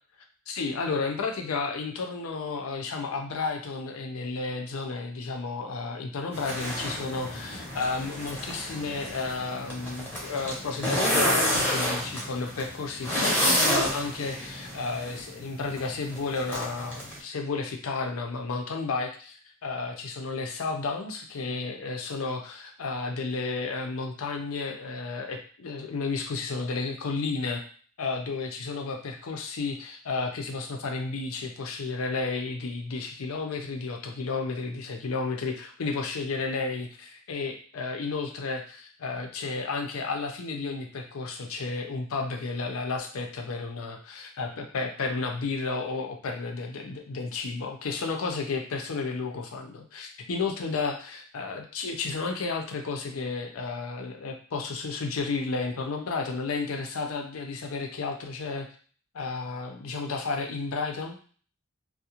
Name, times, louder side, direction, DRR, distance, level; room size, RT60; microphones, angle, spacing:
voice 1, 0.5-27.6 28.0-58.7 59.1-61.2, left 4 dB, 85° left, 3 dB, 0.5 m, -32 dB
sound 1, 6.3-17.2, equal, 10° left, 0.7 m, -30 dB
2.4 x 2.1 x 2.8 m, 0.43 s
head